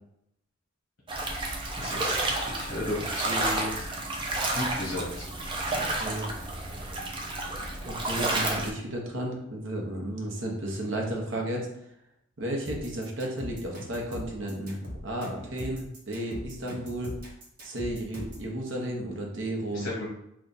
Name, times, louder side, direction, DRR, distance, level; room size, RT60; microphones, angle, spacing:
sound 1, 1.1-8.7, right 2 dB, 25° right, 0.5 m, -31 dB
voice 1, 1.8-3.7 4.5-5.2 5.7-5.9 19.7-20.1, left 1 dB, 60° left, -6 dB, 1.1 m, -34 dB
voice 2, 7.8-11.7 12.4-14.8 15.0-17.2 17.6-19.9, right 1 dB, 65° right, 0 dB, 0.9 m, -33 dB
sound 2, 12.7-18.5, left 1 dB, 45° right, 1.1 m, -40 dB
3.5 x 2.4 x 4.0 m, 0.80 s
head